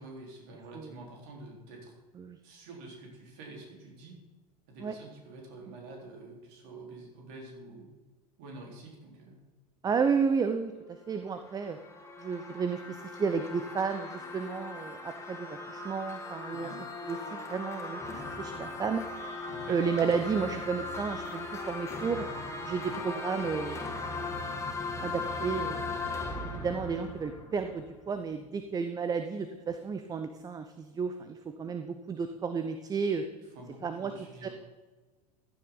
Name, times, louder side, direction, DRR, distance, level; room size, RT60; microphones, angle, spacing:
voice 1, 0.0-2.0 2.4-4.2 4.7-7.9 8.4-9.4 16.5-16.8 19.5-19.8 22.8-23.0 33.5-34.5, right 2 dB, 50° right, 0 dB, 4.1 m, -47 dB
voice 2, 9.8-11.8 12.2-16.7 17.1-19.1 19.7-22.3 22.6-23.9 25.0-25.8 26.4-33.2 33.8-34.1 34.4-34.5, right 5 dB, 20° right, 8 dB, 0.8 m, -32 dB
sound 1, 11.1-28.1, left 3 dB, 15° left, 2.1 m, -38 dB
15.0 x 10.0 x 4.0 m, 1.3 s
figure-of-eight pair, 85°, 21 cm